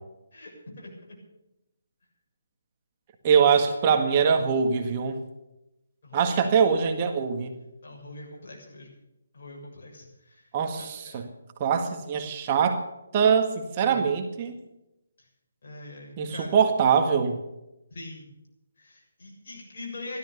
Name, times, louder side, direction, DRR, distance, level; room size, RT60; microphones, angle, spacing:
voice 1, 0.3-1.2 3.4-4.0 6.0-6.6 7.8-8.9 9.3-11.3 13.8-14.1 15.2-15.3 15.6-16.6 17.9-18.3 18.8-20.2, left 2 dB, 55° left, -1 dB, 7.1 m, -43 dB
voice 2, 3.2-5.2 6.1-7.5 10.5-11.2 11.6-12.9 13.1-14.5 16.2-17.4, right 6 dB, 30° right, 5 dB, 1.7 m, -23 dB
15.5 x 13.0 x 6.9 m, 0.91 s
figure-of-eight pair, 150°, 0 cm